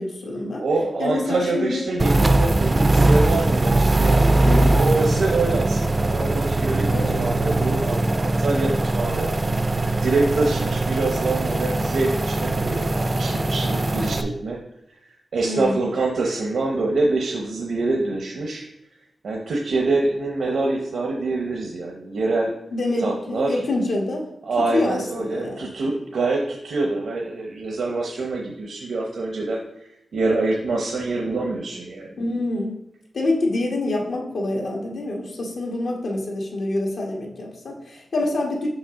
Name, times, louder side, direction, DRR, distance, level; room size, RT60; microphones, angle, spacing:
voice 1, 0.0-0.6 1.0-1.8 4.4-4.8 6.9-7.4 15.4-15.9 22.7-24.3 24.6-25.7 32.2-32.8 33.1-38.7, left 2 dB, 75° left, -1 dB, 1.4 m, -26 dB
voice 2, 0.6-6.8 7.2-9.3 10.0-14.6 15.3-18.6 19.2-22.5 23.0-23.6 24.5-29.6 30.1-32.1, right 3 dB, 85° right, 0 dB, 0.7 m, -25 dB
sound 1, 2.0-14.2, right 2 dB, 25° right, 0.3 m, -21 dB
5.7 x 5.2 x 3.6 m, 0.81 s
wide cardioid pair, 120°, 0 cm